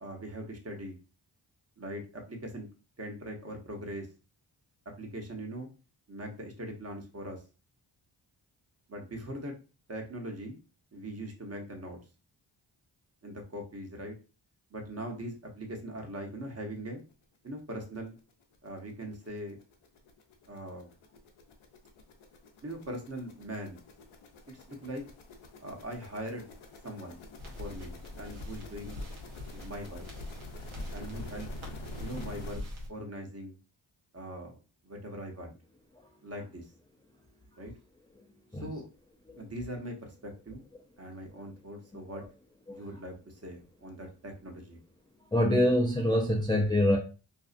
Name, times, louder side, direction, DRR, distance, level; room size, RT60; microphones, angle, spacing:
voice 1, 0.0-1.0 1.8-2.7 3.0-4.1 5.0-5.7 6.1-7.4 8.9-9.5 9.9-10.6 10.9-12.0 13.2-14.1 14.7-17.0 17.4-18.2 18.6-19.6 20.5-20.9 22.6-23.8 24.5-25.0 25.6-26.5 26.8-27.2 27.6-29.0 29.5-30.0 30.9-31.5 32.0-32.6 32.9-33.6 34.1-34.6 34.8-35.5 36.2-36.7 37.6-37.7 38.6-38.8 39.4-40.6 41.0-42.2 42.7-44.8, right 1 dB, 30° right, 0.9 m, -41 dB
sound 1, 17.1-17.2 17.6-17.7 17.9-32.5, left 1 dB, 75° left, 0.7 m, -48 dB
sound 2, 27.4-32.9, left 1 dB, 85° right, 0.9 m, -42 dB
voice 2, 45.3-47.0, left 1 dB, 10° left, 0.5 m, -25 dB
2.6 x 2.3 x 2.4 m
cardioid pair, 40°, 48 cm